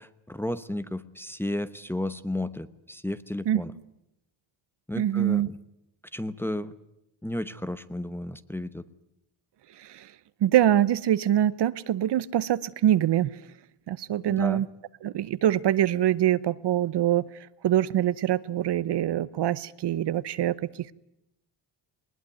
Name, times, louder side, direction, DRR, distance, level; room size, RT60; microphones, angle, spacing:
voice 1, 0.0-3.7 4.9-5.6 6.1-6.7 7.2-8.8 14.3-14.6, left 1 dB, 5° left, 12 dB, 0.9 m, -33 dB
voice 2, 4.9-5.5 9.8-10.1 10.4-13.4 13.9-14.7 15.0-17.3 17.6-20.9, right 11 dB, 60° right, 17 dB, 0.8 m, -24 dB
20.5 x 20.0 x 9.4 m, 0.83 s
cardioid pair, 120°, 47 cm